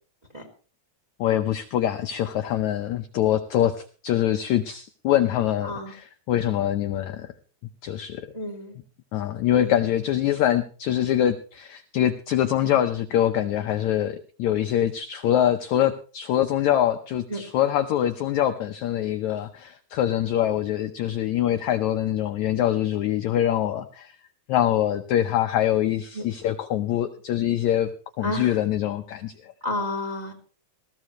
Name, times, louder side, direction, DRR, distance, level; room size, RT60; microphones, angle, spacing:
voice 1, 1.2-7.3 7.8-8.3 9.1-24.1 24.5-29.5, left 11 dB, 80° left, 8 dB, 1.7 m, -24 dB
voice 2, 5.6-5.9 8.3-8.8 9.5-9.8 17.3-17.4 26.1-26.3 28.2-28.6 29.6-30.3, left 1 dB, 15° right, 4 dB, 1.7 m, -31 dB
19.5 x 15.5 x 3.1 m, 0.37 s
omnidirectional pair, 4.2 m